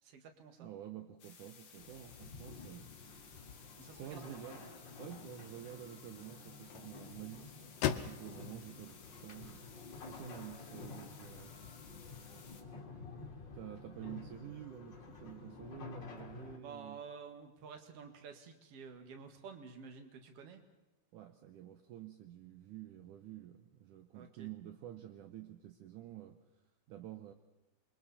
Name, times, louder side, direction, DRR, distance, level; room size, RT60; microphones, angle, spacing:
voice 1, 0.0-0.7 3.8-4.4 14.0-14.1 16.6-20.6 24.1-24.5, right 5 dB, 50° right, 6 dB, 2.0 m, -51 dB
voice 2, 0.6-2.9 4.0-4.7 5.0-9.6 10.1-11.6 12.3-12.5 13.5-17.0 21.1-26.4 26.9-27.3, right 12 dB, 80° right, 7 dB, 1.8 m, -49 dB
sound 1, 1.2-12.6, left 6 dB, 55° left, 1.3 m, -58 dB
sound 2, 1.8-16.6, left 4 dB, 30° left, 2.5 m, -51 dB
sound 3, 4.3-10.4, left 10 dB, 75° left, 2.6 m, -44 dB
28.5 x 23.5 x 4.2 m, 1.0 s
omnidirectional pair, 4.9 m